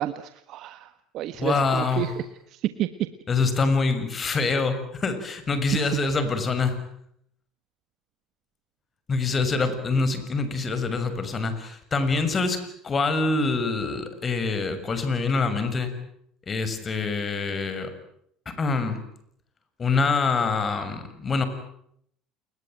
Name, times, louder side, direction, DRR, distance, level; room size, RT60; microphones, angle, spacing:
voice 1, 0.0-3.1 5.7-6.0, right 12 dB, 60° right, 12 dB, 1.4 m, -30 dB
voice 2, 1.4-2.1 3.3-6.8 9.1-16.0 16.5-17.9 18.5-19.0 19.8-21.5, left 4 dB, 30° left, 11 dB, 6.5 m, -25 dB
29.0 x 21.5 x 9.2 m, 0.71 s
supercardioid pair, 95°, 0 cm